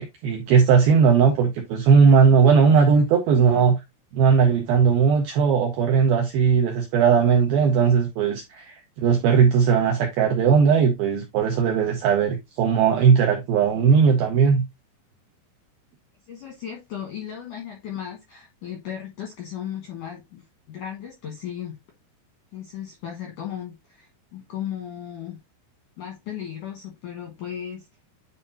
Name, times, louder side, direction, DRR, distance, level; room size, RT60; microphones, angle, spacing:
voice 1, 0.0-3.8 4.1-14.6, right 6 dB, 80° right, 2.1 m, -18 dB
voice 2, 16.3-21.8 22.5-25.4 26.0-27.9, left 9 dB, 75° left, 1.9 m, -36 dB
9.9 x 4.1 x 2.7 m
omnidirectional pair, 5.6 m